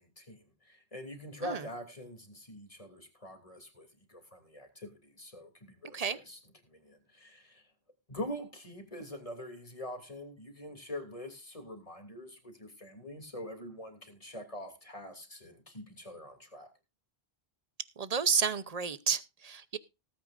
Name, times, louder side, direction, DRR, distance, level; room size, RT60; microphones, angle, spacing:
voice 1, 0.0-6.4 6.6-7.6 8.1-16.7, left 1 dB, 35° left, 3.0 m, -44 dB
voice 2, 18.0-19.8, right 6 dB, 40° right, 0.9 m, -31 dB
18.5 x 9.0 x 2.6 m
omnidirectional pair, 1.0 m